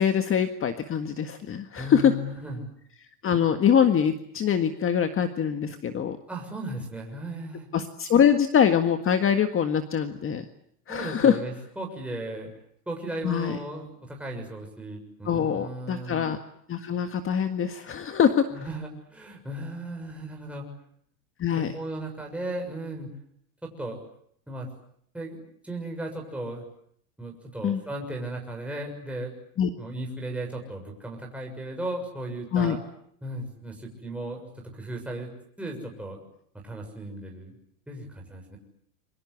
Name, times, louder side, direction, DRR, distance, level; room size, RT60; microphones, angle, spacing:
voice 1, 0.0-2.1 3.2-6.2 7.7-10.5 10.9-11.4 13.2-13.6 15.3-16.4 16.7-18.5 21.4-21.7 27.6-27.8 29.6-29.7 32.5-32.8, left 8 dB, 25° left, 8 dB, 1.7 m, -23 dB
voice 2, 1.8-2.7 6.3-7.7 10.9-12.5 12.9-16.2 18.5-20.7 21.6-23.1 23.6-24.0 24.5-24.7 25.1-26.6 27.2-29.3 29.8-32.8 33.2-35.3 35.6-36.2 36.6-37.5 37.9-38.6, right 1 dB, 5° right, 0 dB, 6.7 m, -36 dB
27.5 x 24.0 x 8.3 m, 0.69 s
supercardioid pair, 125°, 47 cm